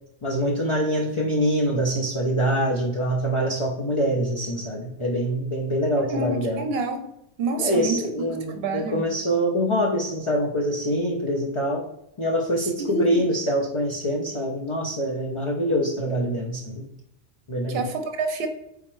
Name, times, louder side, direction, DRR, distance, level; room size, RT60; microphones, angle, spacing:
voice 1, 0.2-6.6 7.6-11.8 12.2-16.8 17.5-17.8, equal, 35° left, -2 dB, 0.5 m, -25 dB
voice 2, 6.0-7.1 7.4-9.1 12.6-13.3 17.7-18.5, right 3 dB, 70° right, 6 dB, 0.9 m, -28 dB
4.2 x 3.6 x 3.1 m, 0.79 s
omnidirectional pair, 1.1 m